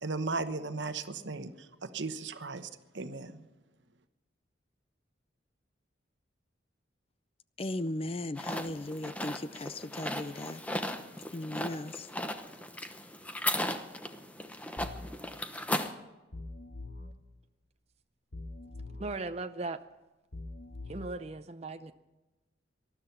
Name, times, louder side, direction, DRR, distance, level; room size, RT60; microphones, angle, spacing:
voice 1, 0.0-3.4, right 3 dB, 70° right, 10 dB, 1.1 m, -36 dB
voice 2, 7.6-10.6 11.3-12.1, left 1 dB, 30° left, 14 dB, 0.5 m, -37 dB
sound 1, 8.4-15.9, left 1 dB, 5° left, 0.9 m, -36 dB
sound 2, 14.8-15.1 16.3-17.1 18.3-19.1 20.3-21.1, left 2 dB, 60° left, 1.7 m, -43 dB
voice 3, 19.0-19.8 20.9-21.9, right 3 dB, 35° right, 8 dB, 0.6 m, -37 dB
19.5 x 12.5 x 5.9 m, 1.1 s
head